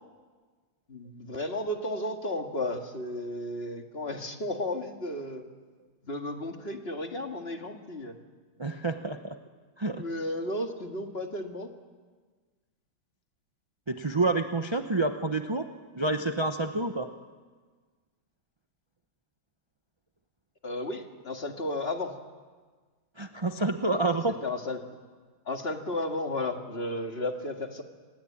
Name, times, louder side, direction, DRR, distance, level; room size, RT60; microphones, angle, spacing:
voice 1, 0.9-5.4 6.0-8.1 10.0-11.7 20.6-22.1 24.4-24.8 25.5-27.8, left 1 dB, 30° left, 4 dB, 2.1 m, -33 dB
voice 2, 8.6-9.4 9.8-10.0 13.9-15.7 15.9-17.1 23.2-24.4, right 2 dB, 35° right, 6 dB, 0.4 m, -28 dB
26.5 x 20.5 x 8.7 m, 1.4 s
omnidirectional pair, 2.1 m